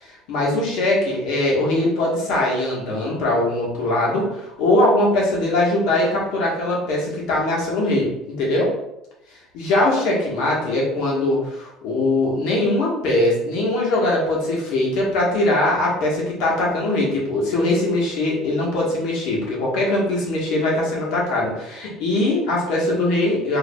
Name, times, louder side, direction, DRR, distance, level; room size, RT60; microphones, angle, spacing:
voice 1, 0.0-8.7 9.5-23.6, left 1 dB, 70° left, -4 dB, 1.4 m, -21 dB
4.6 x 2.9 x 2.3 m, 0.89 s
cardioid pair, 135°, 0 cm